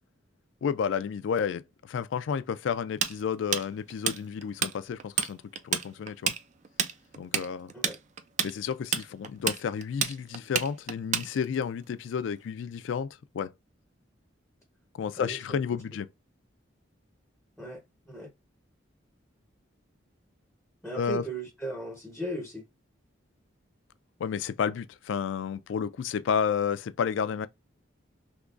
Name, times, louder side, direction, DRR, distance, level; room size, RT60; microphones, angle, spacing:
voice 1, 0.6-6.3 7.2-7.7 8.4-13.1 13.3-13.5 14.9-16.1 20.9-21.2 24.2-27.5, left 7 dB, 75° left, 0.3 m, -31 dB
Tools, 3.0-4.7 5.0-5.3 5.6-11.6, right 8 dB, 35° right, 0.3 m, -29 dB
voice 2, 15.1-15.6 17.6-18.3 20.8-22.6, right 1 dB, ahead, 0.6 m, -37 dB
3.6 x 2.9 x 2.4 m
head